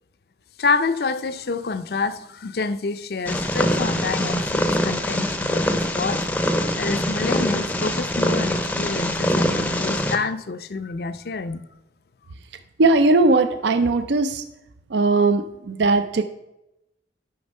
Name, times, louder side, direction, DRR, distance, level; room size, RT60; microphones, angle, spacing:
voice 1, 0.6-6.2 6.8-11.6, left 4 dB, 60° left, 12 dB, 0.5 m, -27 dB
Purr, 3.3-10.2, left 1 dB, 10° left, 0.5 m, -23 dB
voice 2, 12.8-14.4 14.9-16.2, right 3 dB, 75° right, 9 dB, 0.5 m, -19 dB
9.5 x 6.0 x 5.3 m, 0.90 s
head